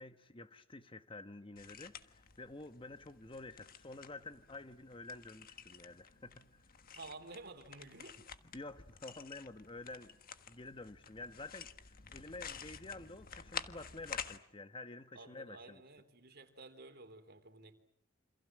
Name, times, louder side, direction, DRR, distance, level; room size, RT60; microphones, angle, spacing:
voice 1, 0.0-6.6 8.5-10.2 10.5-15.8, left 2 dB, 25° left, 1.1 m, -50 dB
sound 1, 1.6-14.4, left 7 dB, 45° left, 1.5 m, -50 dB
voice 2, 6.9-8.2 15.2-17.7, right 3 dB, 50° right, 3.6 m, -52 dB
28.5 x 27.0 x 7.6 m
head